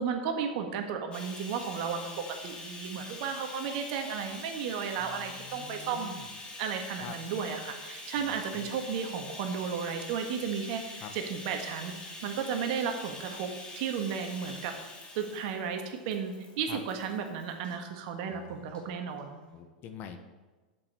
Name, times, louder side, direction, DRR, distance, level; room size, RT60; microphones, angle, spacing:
voice 1, 0.0-6.2 6.6-11.9 12.2-14.7 15.1-19.4, right 6 dB, 55° right, 5 dB, 1.7 m, -34 dB
Bathtub (filling or washing), 1.1-17.8 18.7-18.8 19.2-19.3, left 2 dB, 20° left, 2.5 m, -45 dB
voice 2, 5.0-6.3 7.0-7.1 8.2-8.7 11.0-11.1 16.7-16.8 18.3-18.7 19.5-20.2, left 9 dB, 40° left, 7 dB, 1.3 m, -46 dB
7.8 x 7.5 x 7.6 m, 1.3 s
hypercardioid pair, 95°, 5 cm